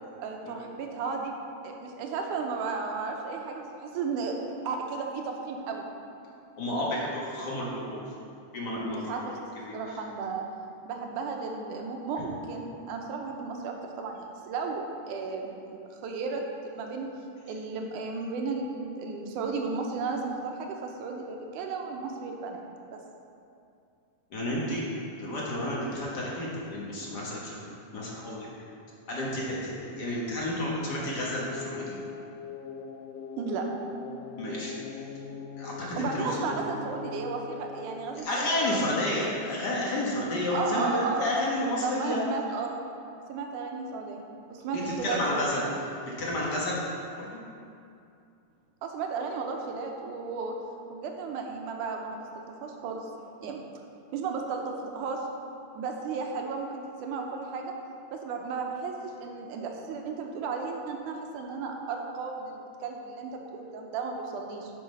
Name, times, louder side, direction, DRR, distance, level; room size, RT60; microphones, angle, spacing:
voice 1, 0.2-1.3 1.6-4.4 4.6-5.9 8.9-9.2 9.7-10.4 10.9-15.6 15.9-17.1 17.5-22.6 22.9-23.0 33.4-33.7 36.0-39.2 40.5-41.2 41.8-42.8 43.3-44.2 44.5-45.6 48.8-50.5 50.9-53.1 53.4-53.6 54.1-55.2 55.8-57.7 58.1-64.7, right 4 dB, 80° right, 2 dB, 2.2 m, -34 dB
voice 2, 6.6-8.0 8.5-9.0 9.6-10.0 12.2-12.3 24.3-24.9 25.2-27.6 27.9-28.5 29.1-32.0 34.4-34.7 35.6-36.5 38.2-42.2 45.0-45.6 46.0-46.8 47.2-47.4, left 1 dB, 55° left, -5 dB, 1.2 m, -31 dB
sound 1, 28.8-38.2, left 5 dB, 80° left, 2.0 m, -42 dB
8.6 x 5.7 x 5.4 m, 2.5 s
omnidirectional pair, 3.6 m